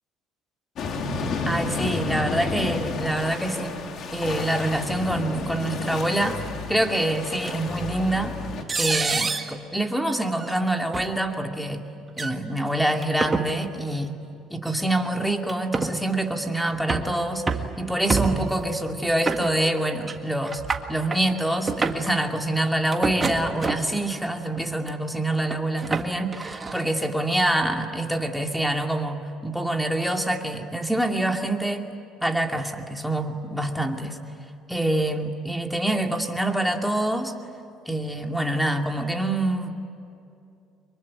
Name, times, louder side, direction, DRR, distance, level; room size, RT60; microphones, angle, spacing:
sound 1, 0.8-8.6, left 3 dB, 55° left, 2.8 m, -31 dB
voice 1, 1.5-3.7 4.1-8.3 8.8-11.9 12.2-14.2 14.5-17.4 17.8-20.6 20.9-31.8 32.2-34.2 34.7-37.3 37.9-39.7, right 1 dB, ahead, 4 dB, 2.5 m, -26 dB
sound 2, 7.5-7.6 8.7-9.5 10.4-10.6 10.9-11.1 12.1-12.3 13.0-13.5 14.7-14.8 15.5-15.9 16.5-17.1 17.5-17.7 18.1-18.6 19.3-19.8 20.1-20.2 20.5-21.2 21.6-22.1 22.9-24.0 24.6-24.9 25.5-26.8, right 4 dB, 25° right, 1.8 m, -27 dB
24.5 x 23.0 x 9.7 m, 2.6 s
supercardioid pair, 95°, 0 cm